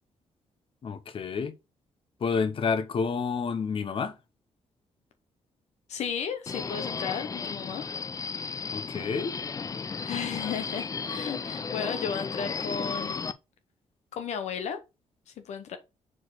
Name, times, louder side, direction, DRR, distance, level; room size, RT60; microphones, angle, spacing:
voice 1, 0.8-1.5 2.2-4.1 8.7-9.3, left 5 dB, 50° left, 1.0 m, -29 dB
voice 2, 5.9-7.9 10.0-13.2 14.1-14.8 15.3-15.8, left 7 dB, 75° left, 0.9 m, -34 dB
Subway metro underground, 6.5-13.3, left 5 dB, 30° left, 0.4 m, -34 dB
4.6 x 4.4 x 4.7 m
cardioid pair, 80°, 12 cm